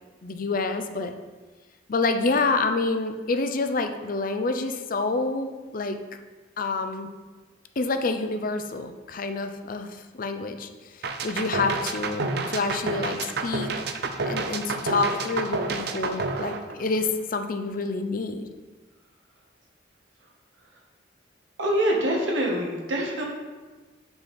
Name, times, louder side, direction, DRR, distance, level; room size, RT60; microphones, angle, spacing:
voice 1, 0.2-1.1 1.9-6.0 6.6-7.1 7.8-9.9 10.2-10.7 11.2-13.7 14.2-18.5, left 3 dB, 50° left, 7 dB, 0.6 m, -27 dB
sound 1, 11.0-17.2, right 3 dB, 60° right, 0.6 m, -30 dB
voice 2, 21.6-23.2, right 1 dB, 80° right, -1 dB, 1.6 m, -25 dB
7.5 x 5.5 x 4.3 m, 1.3 s
head